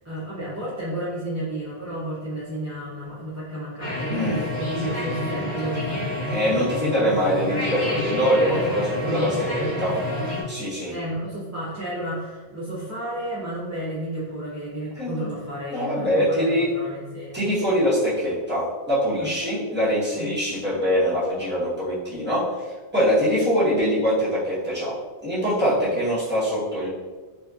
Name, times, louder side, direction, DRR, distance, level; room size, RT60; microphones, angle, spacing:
voice 1, 0.0-6.3 9.0-9.4 10.9-17.4 19.2-19.3 20.1-20.3 25.8-26.0, right 1 dB, 25° right, -10 dB, 0.3 m, -32 dB
sound 1, 3.8-10.4, left 1 dB, 80° left, 1.1 m, -29 dB
voice 2, 6.3-9.3 9.6-9.9 10.5-10.9 15.0-15.3 15.7-16.7 17.3-22.4 22.9-24.9 25.2-26.9, equal, 10° right, -11 dB, 0.8 m, -23 dB
2.7 x 2.4 x 2.3 m, 1.4 s
omnidirectional pair, 1.1 m